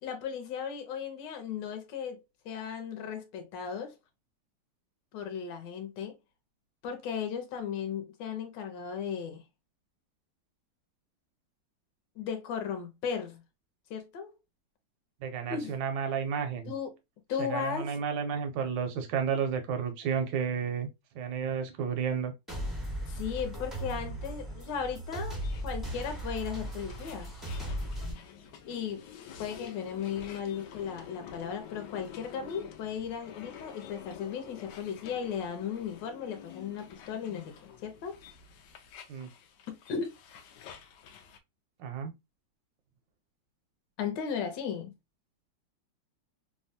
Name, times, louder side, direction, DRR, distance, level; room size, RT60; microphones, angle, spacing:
voice 1, 0.0-3.9 5.1-6.2 6.8-9.4 12.2-13.4 13.9-14.3 15.5-15.7 16.7-16.9 17.3-18.0 23.1-25.4 25.6-27.3 28.7-29.0 29.4-38.2 39.7-40.1 44.0-44.9, left 7 dB, 65° left, 1.2 m, -36 dB
voice 2, 15.2-16.7 17.4-20.9 21.1-22.3 39.1-39.3 41.8-42.1, right 7 dB, 75° right, 1.1 m, -32 dB
sound 1, 22.5-28.1, equal, ahead, 0.5 m, -37 dB
sound 2, 25.4-41.4, left 8 dB, 85° left, 0.9 m, -49 dB
3.4 x 2.2 x 2.5 m
omnidirectional pair, 2.4 m